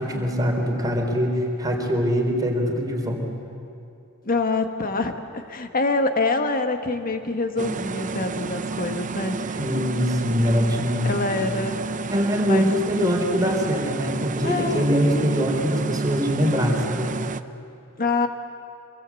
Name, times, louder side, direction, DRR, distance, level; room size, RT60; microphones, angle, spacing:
voice 1, 0.0-3.3 9.6-11.2 12.1-17.2, equal, 15° right, 1 dB, 3.8 m, -23 dB
voice 2, 4.2-9.4 11.0-11.8 12.4-12.7 14.4-15.1 18.0-18.3, left 3 dB, 40° left, 6 dB, 1.7 m, -25 dB
sound 1, 7.6-17.4, right 4 dB, 35° right, 0.7 m, -31 dB
26.0 x 22.5 x 8.5 m, 2.6 s
head